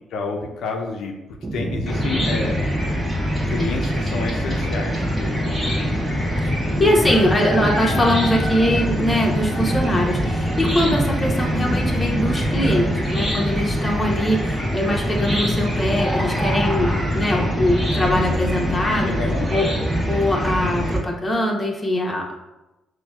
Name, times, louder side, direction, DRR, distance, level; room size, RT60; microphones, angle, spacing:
voice 1, 0.1-1.1 1.5-2.8 3.5-5.9 6.8-7.1 19.0-19.6, left 4 dB, 75° left, 1 dB, 0.5 m, -29 dB
sound 1, 1.4-13.3, right 2 dB, 30° right, 0.4 m, -29 dB
Chicken rooster / Cricket, 1.9-21.0, equal, 10° right, 1.0 m, -23 dB
voice 2, 6.8-19.2 19.5-22.4, left 1 dB, 20° left, 0 dB, 0.8 m, -22 dB
5.8 x 2.2 x 2.3 m, 1.0 s
cardioid pair, 90°, 0 cm